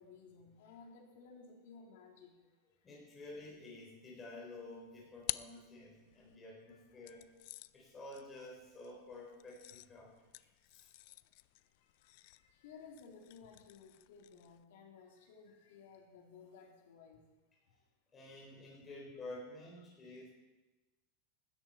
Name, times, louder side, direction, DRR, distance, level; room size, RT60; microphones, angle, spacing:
voice 1, 0.0-2.4 6.3-6.4 6.7-6.8 12.5-17.2, left 5 dB, 70° left, 1 dB, 3.2 m, -56 dB
voice 2, 2.8-7.2 7.7-10.1 10.4-10.5 10.7-10.9 18.1-20.3, left 2 dB, 15° left, -4 dB, 4.4 m, -50 dB
sound 1, 4.6-6.4 7.0-14.6, left 20 dB, 50° left, 0.4 m, -49 dB
16.0 x 13.0 x 4.5 m, 1.1 s
supercardioid pair, 170°, 0 cm